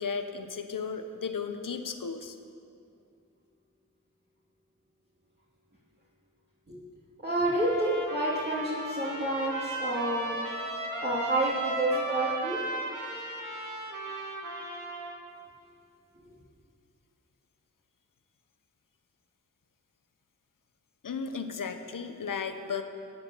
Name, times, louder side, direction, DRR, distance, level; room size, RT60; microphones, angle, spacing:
voice 1, 0.0-2.4 21.0-22.8, left 5 dB, 90° left, 8 dB, 0.9 m, -35 dB
voice 2, 7.2-10.4 11.0-12.6, right 1 dB, 30° right, -8 dB, 2.7 m, -29 dB
Trumpet, 7.6-15.2, right 2 dB, 80° right, 2.1 m, -36 dB
15.5 x 9.1 x 7.1 m, 2.5 s
wide cardioid pair, 55°, 32 cm